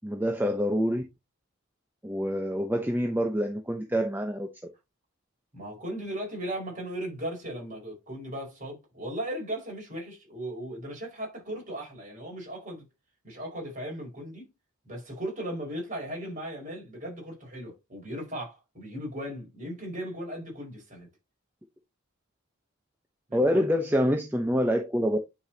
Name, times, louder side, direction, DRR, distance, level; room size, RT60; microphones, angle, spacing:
voice 1, 0.0-1.0 2.0-4.5 23.3-25.2, equal, 10° right, 0.8 m, -26 dB
voice 2, 5.5-12.8 13.2-14.5 14.8-21.1 23.3-23.7, equal, 35° right, 5.0 m, -37 dB
9.5 x 5.2 x 2.8 m
head